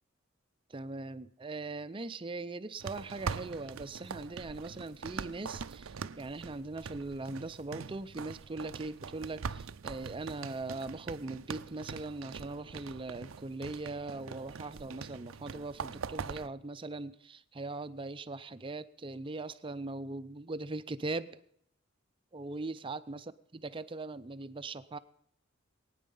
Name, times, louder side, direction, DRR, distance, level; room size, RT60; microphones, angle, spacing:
voice 1, 0.7-21.3 22.3-23.2 23.5-25.0, right 3 dB, 25° right, 12 dB, 0.5 m, -40 dB
sound 1, 2.8-16.5, right 6 dB, 75° right, 0.5 m, -43 dB
20.5 x 9.4 x 5.5 m, 0.70 s
head